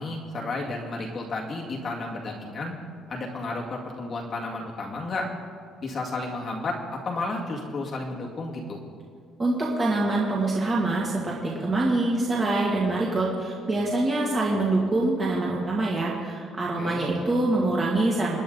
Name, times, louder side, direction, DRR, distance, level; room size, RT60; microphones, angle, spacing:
voice 1, 0.0-2.8 3.1-5.3 5.8-8.8 16.8-17.0, left 2 dB, 30° left, -2 dB, 2.1 m, -32 dB
voice 2, 9.4-18.4, right 2 dB, 20° right, -4 dB, 2.1 m, -25 dB
26.5 x 10.5 x 4.0 m, 2.1 s
cardioid pair, 170°, 0 cm